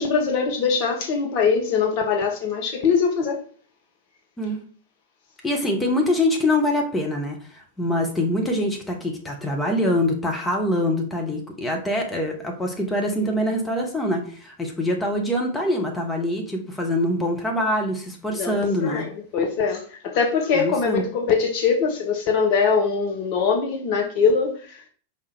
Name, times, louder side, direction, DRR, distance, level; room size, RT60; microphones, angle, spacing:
voice 1, 0.0-3.4 18.4-24.9, left 5 dB, 45° left, 0.9 m, -22 dB
voice 2, 5.4-19.1 20.5-21.0, left 1 dB, 10° left, 1.0 m, -24 dB
5.1 x 2.9 x 3.4 m
figure-of-eight pair, 90°, 0 cm